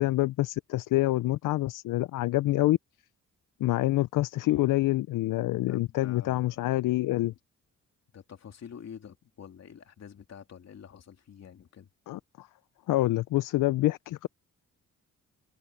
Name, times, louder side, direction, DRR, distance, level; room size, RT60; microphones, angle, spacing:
voice 1, 0.0-2.8 3.6-7.3 12.1-12.5 12.9-14.3, left 17 dB, 80° left, 0.5 m, -26 dB
voice 2, 5.7-6.7 8.1-11.9, left 8 dB, 55° left, 2.8 m, -47 dB
cardioid pair, 120°, 31 cm